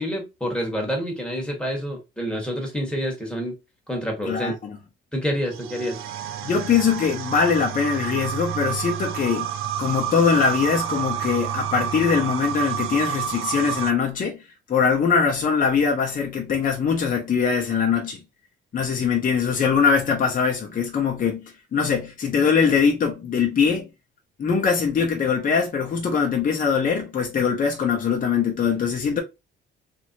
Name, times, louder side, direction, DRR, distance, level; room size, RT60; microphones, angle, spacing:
voice 1, 0.0-3.6 3.9-4.5 5.1-6.0, equal, 5° left, 1.3 m, -28 dB
voice 2, 4.3-4.8 6.4-9.5 9.8-14.4 14.7-18.2 18.7-21.4 21.7-23.9 24.4-29.2, left 6 dB, 40° left, 0.8 m, -22 dB
sound 1, 5.5-13.9, right 10 dB, 80° right, 0.5 m, -29 dB
3.0 x 2.7 x 2.7 m
cardioid pair, 110°, 21 cm